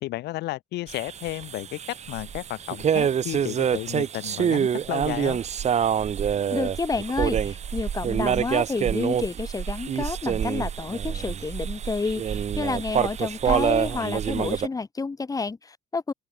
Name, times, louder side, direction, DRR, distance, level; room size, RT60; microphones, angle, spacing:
voice 1, 0.0-5.4, left 17 dB, 80° left, 1.5 m, -33 dB
sound 1, 0.9-14.7, right 8 dB, 40° right, 1.4 m, -26 dB
voice 2, 6.5-16.1, left 4 dB, 20° left, 1.9 m, -30 dB
open air
cardioid pair, 110°, 17 cm